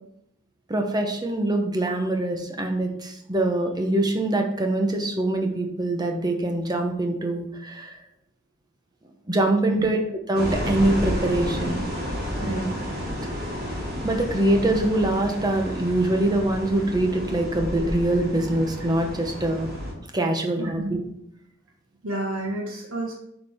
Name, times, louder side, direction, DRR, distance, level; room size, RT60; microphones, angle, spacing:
voice 1, 0.7-8.0 9.3-10.0 10.3-11.8 12.4-12.7 14.0-19.7 20.1-21.0, right 1 dB, 20° right, 4 dB, 1.0 m, -24 dB
sound 1, 10.3-19.9, equal, 50° right, 3.1 m, -31 dB
voice 2, 12.3-12.7 20.6-20.9 22.0-23.1, right 2 dB, 80° right, -2 dB, 1.4 m, -30 dB
8.3 x 5.0 x 3.6 m, 0.76 s
head